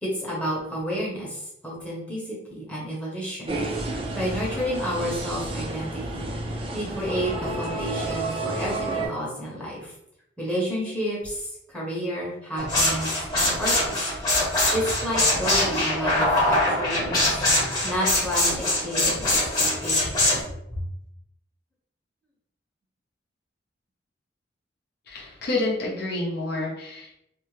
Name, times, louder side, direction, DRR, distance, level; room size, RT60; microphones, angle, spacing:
voice 1, 0.0-6.3 6.7-9.9 10.4-14.1 14.7-17.4 17.8-20.3 20.7-20.8, equal, 5° left, -6 dB, 0.8 m, -31 dB
sound 1, 3.5-9.1, right 2 dB, 30° right, 0.4 m, -30 dB
sound 2, 12.6-20.4, left 1 dB, 25° left, 1.0 m, -23 dB
voice 2, 25.1-27.1, left 2 dB, 60° left, -4 dB, 0.7 m, -28 dB
2.5 x 2.1 x 3.1 m, 0.78 s
head